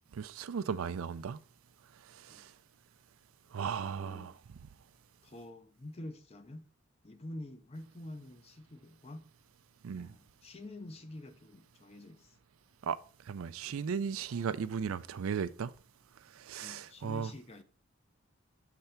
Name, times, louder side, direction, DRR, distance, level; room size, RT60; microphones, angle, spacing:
voice 1, 0.1-1.4 2.1-2.5 3.5-4.3 9.8-10.1 12.8-13.0 13.3-15.7 16.3-17.3, right 6 dB, 80° right, 0.4 m, -36 dB
voice 2, 3.8-4.4 5.2-6.7 7.0-9.3 10.0-12.4 16.6-17.6, left 1 dB, 30° left, 0.6 m, -47 dB
6.8 x 3.3 x 5.7 m
head